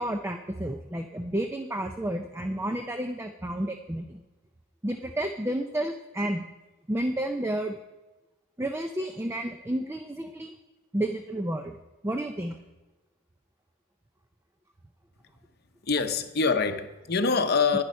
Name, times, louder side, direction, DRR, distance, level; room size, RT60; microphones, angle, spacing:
voice 1, 0.0-4.2 4.8-6.5 6.9-7.8 8.6-10.5 10.9-11.8 12.0-12.6, right 1 dB, 10° right, 0.4 m, -31 dB
voice 2, 15.8-17.8, left 4 dB, 50° left, 0.8 m, -25 dB
10.5 x 10.5 x 5.4 m
head